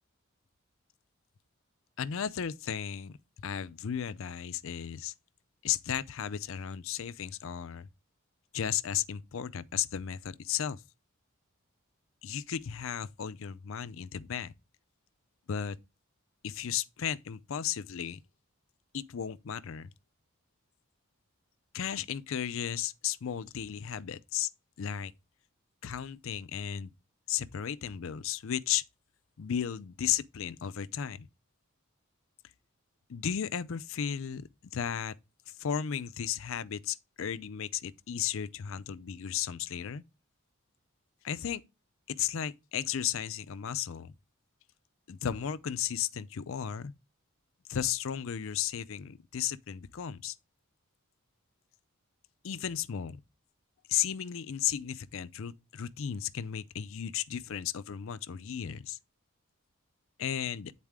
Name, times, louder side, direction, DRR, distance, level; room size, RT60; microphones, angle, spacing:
voice 1, 2.0-5.1 5.6-7.9 8.5-10.8 12.2-14.5 15.5-15.8 16.4-18.2 18.9-19.9 21.7-24.5 24.8-25.1 25.8-26.9 27.3-28.8 29.4-31.3 33.1-35.1 35.6-40.0 41.2-41.6 42.1-44.1 45.1-46.9 47.7-50.4 52.4-53.2 53.9-59.0 60.2-60.7, left 9 dB, 65° left, 0.5 m, -34 dB
8.7 x 4.1 x 3.5 m
head